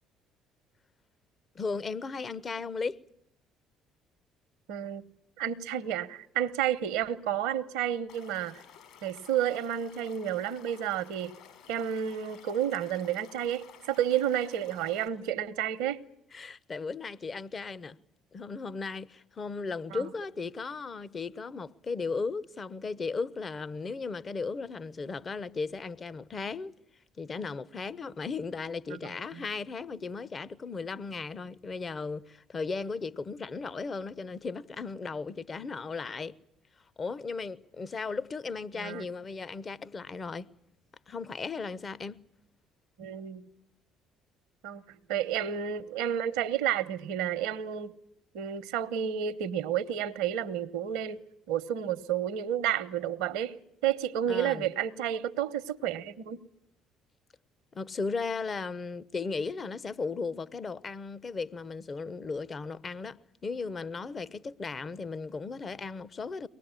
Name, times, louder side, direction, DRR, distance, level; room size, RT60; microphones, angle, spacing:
voice 1, 1.5-3.0 16.3-18.0 18.3-26.7 27.2-36.4 37.0-40.5 41.1-42.2 54.3-54.7 57.7-66.5, left 4 dB, 35° left, 0.9 m, -36 dB
voice 2, 4.7-5.0 5.4-8.6 9.0-11.4 11.7-16.1 19.9-20.1 28.9-29.0 29.3-29.4 38.7-39.1 43.0-43.5 44.6-44.8 45.1-48.0 48.3-53.6 53.8-56.4, right 10 dB, 70° right, 0.9 m, -31 dB
Stream / Liquid, 8.1-15.1, left 8 dB, 65° left, 5.4 m, -54 dB
23.5 x 19.5 x 9.8 m
hypercardioid pair, 50°, 0 cm